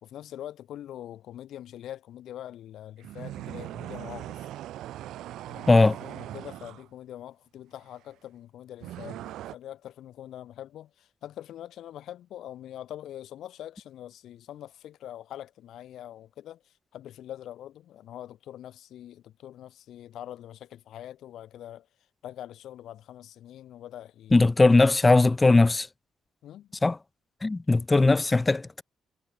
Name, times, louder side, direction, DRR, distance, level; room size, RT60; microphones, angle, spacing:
voice 1, 0.0-4.4 5.5-21.9 22.2-24.4 26.4-26.7, left 12 dB, 75° left, 2.0 m, -43 dB
sound 1, 3.0-6.9 8.8-9.6, right 13 dB, 85° right, 2.4 m, -40 dB
voice 2, 24.3-25.9 26.8-27.0 27.4-28.8, left 3 dB, 20° left, 0.5 m, -19 dB
cardioid pair, 90°, 0 cm